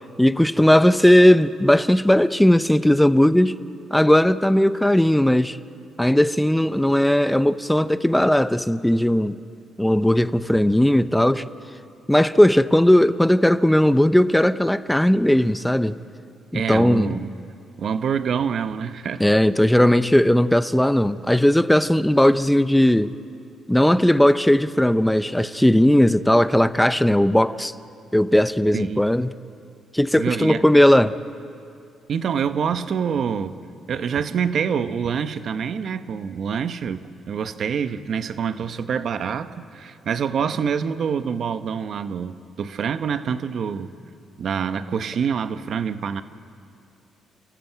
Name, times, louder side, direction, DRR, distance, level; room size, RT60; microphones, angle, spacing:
voice 1, 0.2-3.6 3.9-5.6 6.0-9.4 9.8-11.5 12.1-16.0 16.5-17.2 19.2-23.1 23.7-27.7 28.1-29.3 29.9-31.2, left 1 dB, 5° left, 0.6 m, -17 dB
voice 2, 16.5-17.3 17.8-19.3 28.7-29.0 30.2-30.6 32.1-33.6 33.9-43.9 44.4-46.2, right 7 dB, 60° right, 0.9 m, -26 dB
29.5 x 14.5 x 8.0 m
cardioid pair, 90°, 0 cm